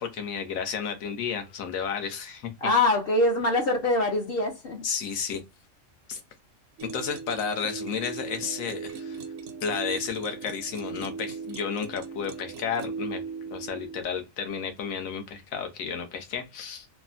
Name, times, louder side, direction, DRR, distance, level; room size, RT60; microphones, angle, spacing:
voice 1, 0.0-2.5 4.8-5.4 6.1-6.2 6.9-9.2 9.6-13.2 13.5-16.9, left 6 dB, 80° left, 1.1 m, -32 dB
voice 2, 2.6-4.8, left 2 dB, 55° left, 0.8 m, -24 dB
sound 1, 6.8-14.0, right 5 dB, 65° right, 0.7 m, -38 dB
3.2 x 2.1 x 2.4 m
omnidirectional pair, 1.4 m